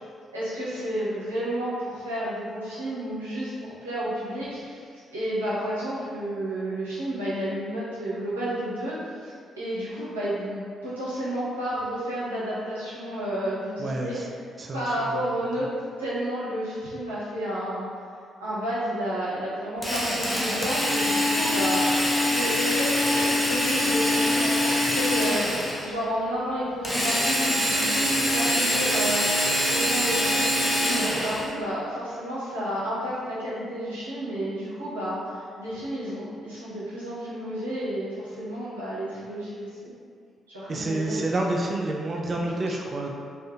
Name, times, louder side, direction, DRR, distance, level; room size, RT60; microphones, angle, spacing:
voice 1, 0.3-14.2 14.7-15.7 16.0-17.8 18.4-21.9 22.3-29.2 29.6-39.9 40.5-41.7 42.5-42.8, equal, 90° right, -12 dB, 0.7 m, -31 dB
voice 2, 13.8-14.3 14.6-15.1 40.7-43.1, right 2 dB, 40° right, 0 dB, 0.3 m, -29 dB
Drill, 19.8-25.9 26.8-31.5, left 1 dB, 15° left, 0.6 m, -24 dB
2.6 x 2.5 x 2.2 m, 2.2 s
figure-of-eight pair, 40°, 0 cm